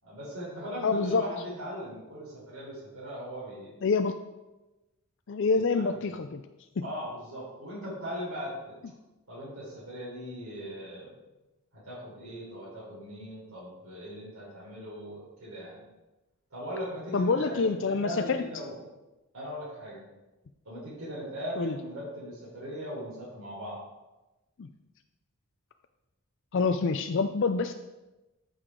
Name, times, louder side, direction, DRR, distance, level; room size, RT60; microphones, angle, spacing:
voice 1, 0.0-3.7 5.5-6.0 6.8-8.8 9.3-11.2 11.7-15.8 16.5-18.7 19.3-20.0 20.6-23.8, equal, 70° right, -8 dB, 3.9 m, -39 dB
voice 2, 0.8-1.2 3.8-4.1 5.3-6.4 17.1-18.4 21.6-21.8 24.6-24.7 26.5-27.7, left 4 dB, 55° left, 7 dB, 0.4 m, -26 dB
13.5 x 6.4 x 3.7 m, 1.1 s
head